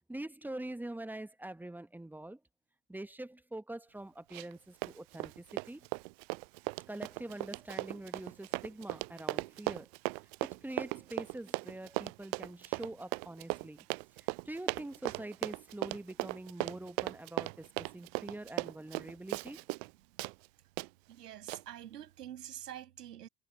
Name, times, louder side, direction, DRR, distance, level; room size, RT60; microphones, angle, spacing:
voice 1, 0.1-2.4 2.9-5.9 6.9-9.9 10.4-13.9 14.2-19.6, right 1 dB, 5° right, 1.3 m, -44 dB
Run, 4.3-4.6 4.8-19.9 20.2-20.3 20.8-20.9 21.5-21.6, right 30 dB, 45° right, 0.4 m, -37 dB
voice 2, 21.1-23.3, right 11 dB, 70° right, 7.8 m, -46 dB
figure-of-eight pair, 70°, 49 cm